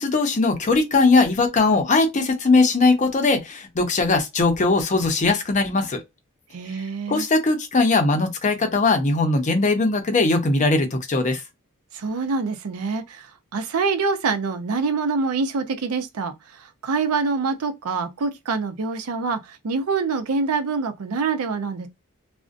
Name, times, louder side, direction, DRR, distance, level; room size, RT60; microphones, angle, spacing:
voice 1, 0.0-6.0 7.1-11.4, left 3 dB, 35° left, 0.5 m, -20 dB
voice 2, 6.5-7.2 11.9-21.9, right 4 dB, 85° right, 0.5 m, -25 dB
2.5 x 2.1 x 2.4 m
head